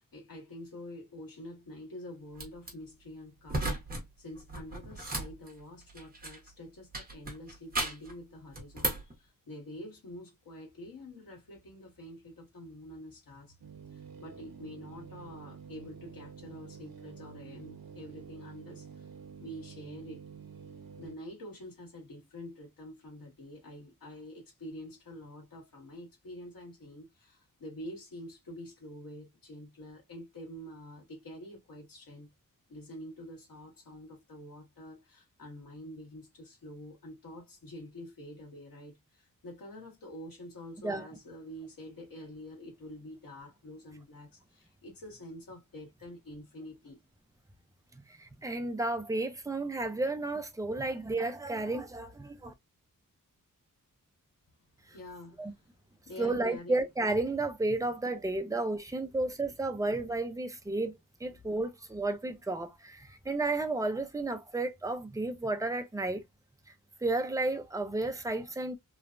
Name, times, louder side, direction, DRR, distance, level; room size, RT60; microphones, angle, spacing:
voice 1, 0.0-3.8 4.2-13.5 13.9-19.0 19.4-20.2 21.0-32.3 32.7-47.0 54.9-55.5 56.0-56.8, left 1 dB, 85° left, 1.5 m, -47 dB
sound 1, 2.4-2.7 3.5-4.0 4.3-6.5 6.9-8.1 8.5-9.1, right 2 dB, 25° right, 1.0 m, -35 dB
sound 2, 13.6-21.2, right 7 dB, 85° right, 0.6 m, -49 dB
voice 2, 47.9-52.5 55.4-55.5 56.2-66.2 67.0-68.8, right 2 dB, 10° right, 0.4 m, -32 dB
3.1 x 2.1 x 2.4 m
wide cardioid pair, 160°, 34 cm